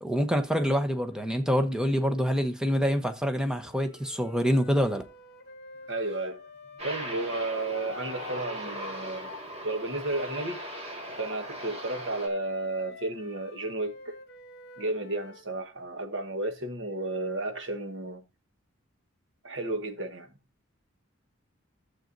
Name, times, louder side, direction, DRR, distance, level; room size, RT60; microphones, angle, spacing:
voice 1, 0.0-5.0, equal, 5° right, 0.9 m, -26 dB
Wind instrument woodwind instrument, 3.6-9.5 9.9-15.5, left 4 dB, 50° left, 1.2 m, -48 dB
voice 2, 5.9-6.4 6.8-9.3 9.6-10.6 11.2-14.1 14.8-18.2 19.4-20.3, right 2 dB, 60° right, 1.3 m, -33 dB
Aircraft, 6.8-12.3, right 1 dB, 30° right, 1.8 m, -39 dB
12.5 x 7.8 x 2.6 m
head